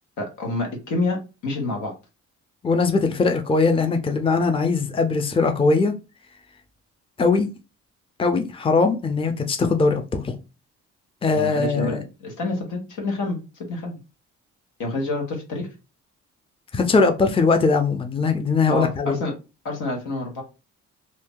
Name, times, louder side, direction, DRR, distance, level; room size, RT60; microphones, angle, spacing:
voice 1, 0.2-1.9 11.3-13.4 13.7-14.0 14.8-15.7 18.7-19.3 19.6-20.4, left 2 dB, 85° left, 1.4 m, -28 dB
voice 2, 2.6-5.9 7.2-7.5 8.2-10.4 11.2-12.0 16.7-19.2, left 4 dB, 20° left, 0.6 m, -20 dB
2.8 x 2.7 x 3.7 m
cardioid pair, 90°, 30 cm